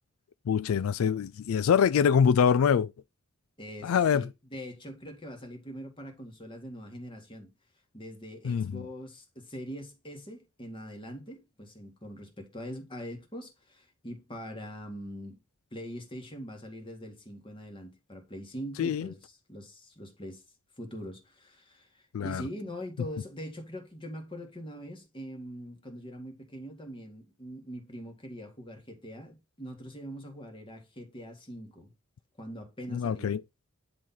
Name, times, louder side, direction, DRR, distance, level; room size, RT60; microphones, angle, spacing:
voice 1, 0.5-2.9 3.8-4.3 8.4-8.8 18.8-19.1 22.1-22.4 32.9-33.4, left 7 dB, 85° left, 0.4 m, -24 dB
voice 2, 3.6-7.5 7.9-15.4 15.7-20.4 20.8-31.9 32.4-33.4, equal, 25° left, 2.1 m, -42 dB
10.0 x 4.4 x 3.9 m
head